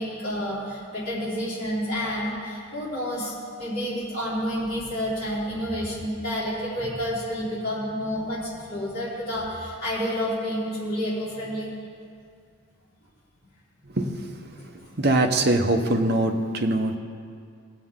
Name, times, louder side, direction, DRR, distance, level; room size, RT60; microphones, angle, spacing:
voice 1, 0.0-11.7 14.6-14.7, equal, 45° left, -10 dB, 3.3 m, -29 dB
voice 2, 15.0-17.0, right 1 dB, 45° right, 5 dB, 0.8 m, -22 dB
19.5 x 8.1 x 3.7 m, 2.3 s
head